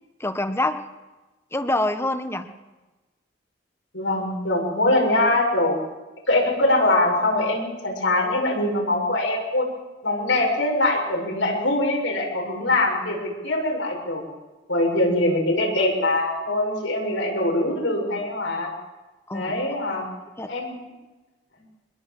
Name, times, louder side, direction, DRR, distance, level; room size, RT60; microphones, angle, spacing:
voice 1, 0.2-0.8 1.5-2.5 19.3-19.6 20.4-20.5, left 1 dB, 15° left, 9 dB, 1.4 m, -25 dB
voice 2, 3.9-5.8 6.3-9.7 10.0-14.2 14.7-18.7 19.3-20.1 20.5-20.9, left 1 dB, 85° left, 1 dB, 7.3 m, -23 dB
24.0 x 21.5 x 7.9 m, 1.2 s
head